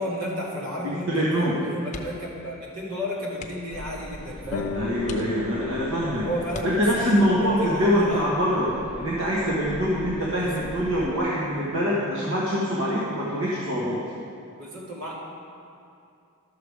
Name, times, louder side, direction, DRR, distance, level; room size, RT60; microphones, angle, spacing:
voice 1, 0.0-4.7 6.2-8.2 10.3-10.7 14.6-15.1, equal, 80° right, -5 dB, 2.3 m, -33 dB
voice 2, 0.8-1.5 4.7-6.3 6.6-14.0, equal, 65° right, -7 dB, 1.4 m, -24 dB
sound 1, 1.9-2.4 2.7-2.9 3.3-3.8 4.4-4.5 5.0-5.8 6.5-7.3 8.8-9.1 9.5-9.6, left 3 dB, 35° left, 0.7 m, -42 dB
sound 2, 3.7-11.2, equal, 5° right, 0.6 m, -42 dB
Guitar, 4.5-9.9, left 6 dB, 75° left, 0.6 m, -38 dB
12.0 x 6.8 x 4.8 m, 2.5 s
head